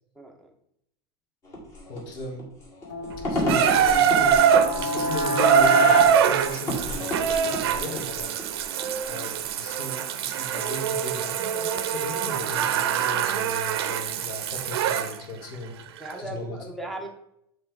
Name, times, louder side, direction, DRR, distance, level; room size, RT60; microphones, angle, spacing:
voice 1, 0.2-0.5 16.0-17.1, right 1 dB, ahead, 3 dB, 0.7 m, -37 dB
sound 1, 1.4-9.6, left 1 dB, 25° left, 1.5 m, -33 dB
voice 2, 1.9-2.5 3.2-4.4 4.7-8.3 9.1-15.8 16.2-16.6, left 1 dB, 60° left, 2 dB, 1.6 m, -37 dB
sound 2, 2.8-7.2, left 2 dB, 40° left, 0.9 m, -30 dB
Water tap faucet / Bathtub (filling or washing), 3.5-15.1 16.1-16.2, right 8 dB, 90° right, 0.6 m, -23 dB
7.2 x 3.2 x 4.5 m, 0.76 s
supercardioid pair, 165°, 13 cm